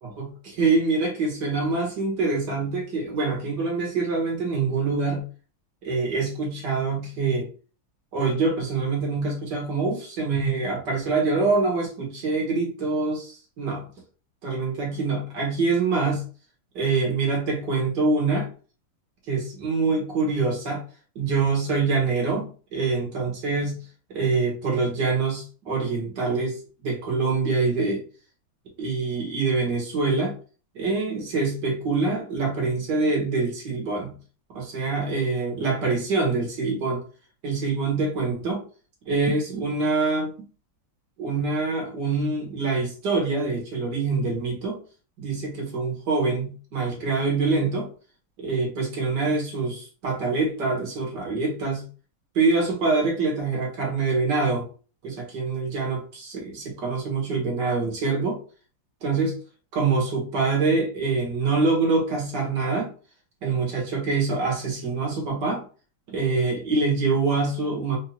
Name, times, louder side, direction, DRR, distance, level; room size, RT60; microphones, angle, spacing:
voice 1, 0.0-5.2 5.8-7.5 8.1-13.9 14.4-16.2 16.7-18.5 19.3-20.8 21.1-23.8 24.1-28.0 28.8-30.3 30.7-34.1 34.5-37.0 37.4-38.6 39.1-40.3 41.2-44.8 45.2-47.9 48.4-51.9 52.3-54.6 55.0-58.4 59.0-59.4 59.7-62.9 63.4-65.6 66.1-68.0, right 3 dB, 55° right, -1 dB, 1.8 m, -25 dB
4.5 x 2.7 x 2.9 m, 0.37 s
omnidirectional pair, 2.4 m